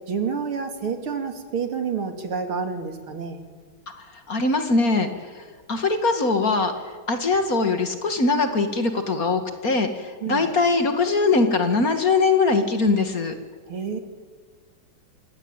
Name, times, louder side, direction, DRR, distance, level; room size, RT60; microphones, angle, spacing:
voice 1, 0.1-3.4 10.2-10.5 13.7-14.0, right 6 dB, 80° right, 6 dB, 3.5 m, -29 dB
voice 2, 4.0-5.1 5.4-6.7 7.1-13.3, left 3 dB, 45° left, 7 dB, 2.5 m, -22 dB
28.0 x 21.5 x 9.1 m, 1.5 s
omnidirectional pair, 2.3 m